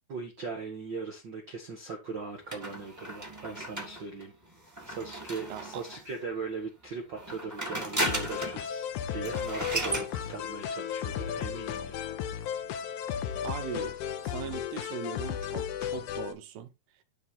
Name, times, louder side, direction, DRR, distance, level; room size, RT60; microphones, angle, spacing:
voice 1, 0.1-4.3 4.8-12.0, right 4 dB, 60° right, 1.2 m, -39 dB
sound 1, 2.5-6.2 7.1-8.7 8.9-9.0 9.2-10.1, right 1 dB, 10° right, 1.2 m, -35 dB
voice 2, 5.5-5.8 13.4-16.7, right 8 dB, 90° right, 3.1 m, -40 dB
sound 2, 8.1-16.3, left 9 dB, 75° left, 1.9 m, -34 dB
11.5 x 4.3 x 4.0 m
omnidirectional pair, 4.4 m